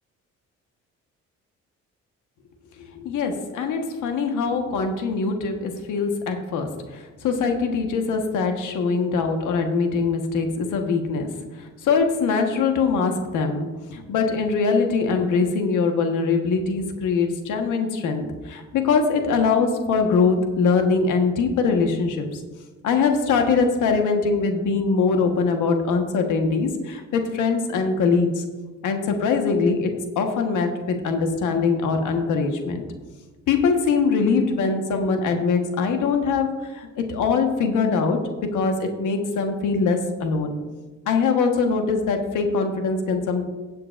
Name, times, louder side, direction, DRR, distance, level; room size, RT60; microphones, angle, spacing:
voice 1, 2.9-22.4 22.8-28.4 28.8-32.8 33.5-38.2 38.5-40.6 41.1-43.4, left 4 dB, 85° left, 4 dB, 1.3 m, -22 dB
16.0 x 7.7 x 2.5 m, 1.3 s
cardioid pair, 90°, 30 cm